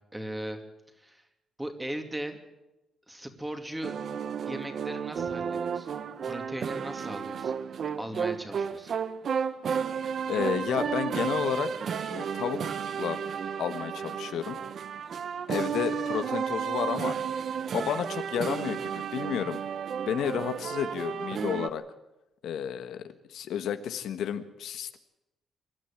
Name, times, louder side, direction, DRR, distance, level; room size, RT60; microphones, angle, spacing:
voice 1, 0.1-0.6 1.0-1.3 1.6-2.4 3.1-3.9 4.5-5.9 6.2-7.6 8.0-8.9, right 1 dB, 10° right, 6 dB, 2.6 m, -38 dB
sound 1, 3.8-21.7, right 7 dB, 50° right, 1.0 m, -32 dB
voice 2, 10.3-13.2 13.6-14.6 15.5-17.2 17.7-19.6 20.1-21.8 22.4-25.0, left 9 dB, 80° left, 9 dB, 1.4 m, -32 dB
26.0 x 12.5 x 8.9 m, 0.94 s
cardioid pair, 145°, 0 cm